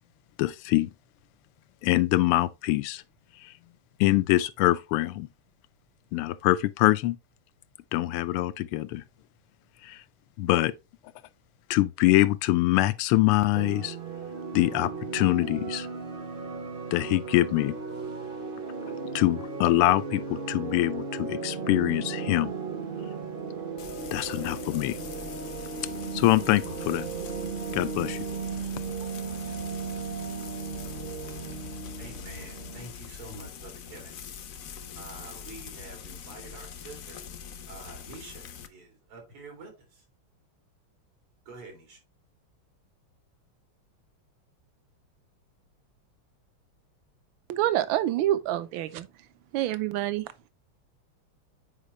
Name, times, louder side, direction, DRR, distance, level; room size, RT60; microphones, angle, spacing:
voice 1, 0.4-0.9 1.8-3.0 3.4-3.5 4.0-5.3 6.1-7.2 7.9-9.0 9.8-10.0 10.4-10.7 11.7-14.0 14.5-15.9 16.9-17.8 19.1-22.5 24.1-25.0 26.1-27.1 27.7-28.2, left 16 dB, 85° left, 1.5 m, -24 dB
sound 1, 13.5-32.9, right 5 dB, 50° right, 0.6 m, -36 dB
Frying (food), 23.8-38.7, left 7 dB, 70° left, 0.8 m, -43 dB
voice 2, 32.0-34.2 35.0-37.2 37.7-40.0 41.5-42.0, right 3 dB, 90° right, 3.8 m, -47 dB
voice 3, 47.5-49.1 49.5-50.5, right 13 dB, 75° right, 1.3 m, -27 dB
8.4 x 4.8 x 3.2 m
omnidirectional pair, 2.4 m